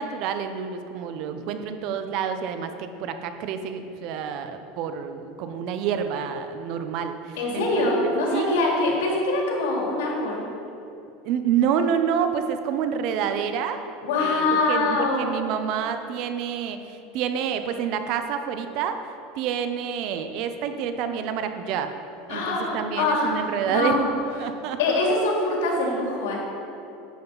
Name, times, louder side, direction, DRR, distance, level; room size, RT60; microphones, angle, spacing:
voice 1, 0.0-7.9 8.3-8.8 11.2-13.8 14.2-19.0 19.4-21.9 22.3-24.0 24.4-25.0, right 8 dB, 60° right, 8 dB, 0.8 m, -28 dB
voice 2, 7.4-10.5 14.0-15.3 22.3-24.0 24.8-26.4, left 2 dB, 85° left, -2 dB, 2.5 m, -24 dB
11.0 x 8.7 x 4.0 m, 2.8 s
supercardioid pair, 125°, 0 cm